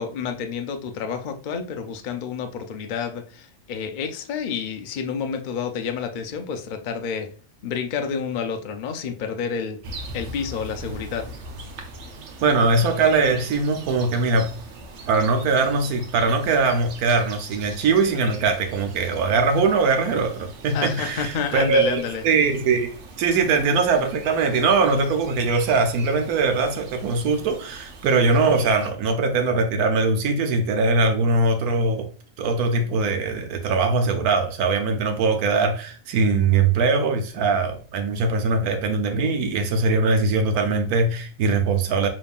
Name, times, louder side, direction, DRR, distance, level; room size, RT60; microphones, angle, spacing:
voice 1, 0.0-7.3 7.6-9.8 10.1-11.3 20.7-22.2, left 6 dB, 90° left, 5 dB, 0.4 m, -29 dB
sound 1, 9.8-28.9, right 2 dB, 60° right, 0.9 m, -41 dB
voice 2, 12.4-14.5 15.1-22.9 23.2-32.1 32.4-42.1, right 4 dB, 85° right, 5 dB, 1.2 m, -21 dB
5.2 x 3.0 x 2.4 m, 0.39 s
omnidirectional pair, 1.5 m